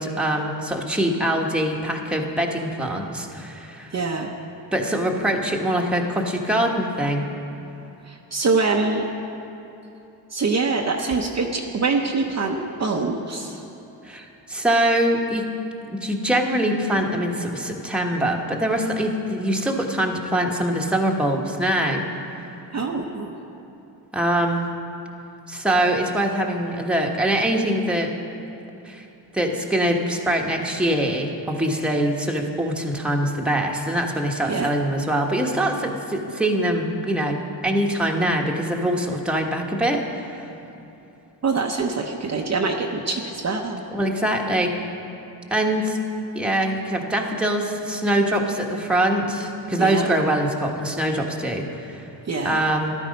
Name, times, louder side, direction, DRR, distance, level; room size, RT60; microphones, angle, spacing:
voice 1, 0.0-3.9 4.7-7.2 14.0-15.5 15.9-22.0 24.1-24.7 25.5-28.1 28.8-29.0 29.3-40.5 43.9-44.7 45.5-46.0 46.3-52.0 52.4-52.9, right 1 dB, ahead, 0 dB, 1.3 m, -23 dB
voice 2, 3.9-4.3 8.1-9.1 10.3-13.6 22.7-23.3 34.5-34.7 41.4-43.8 49.8-50.1 52.3-52.7, right 4 dB, 35° right, 1 dB, 0.9 m, -24 dB
13.5 x 11.5 x 5.3 m, 3.0 s
cardioid pair, 95°, 43 cm